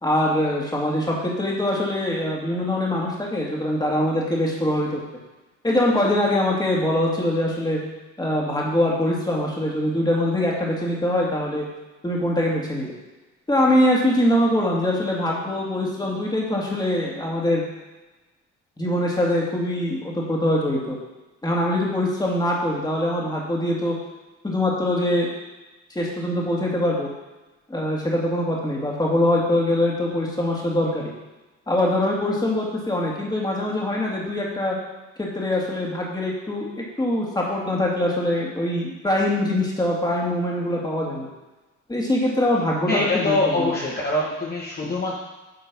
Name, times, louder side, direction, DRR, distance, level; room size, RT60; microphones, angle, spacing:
voice 1, 0.0-5.0 5.6-7.8 8.2-11.7 12.0-12.9 13.5-17.6 18.8-21.0 21.4-24.0 24.4-25.3 25.9-27.1 27.7-31.1 31.7-34.8 35.2-41.3 41.9-43.8, left 1 dB, 15° left, -3 dB, 2.3 m, -23 dB
voice 2, 42.9-45.2, left 2 dB, 30° left, -5 dB, 1.5 m, -24 dB
9.1 x 3.9 x 6.1 m, 1.1 s
cardioid pair, 90°, 30 cm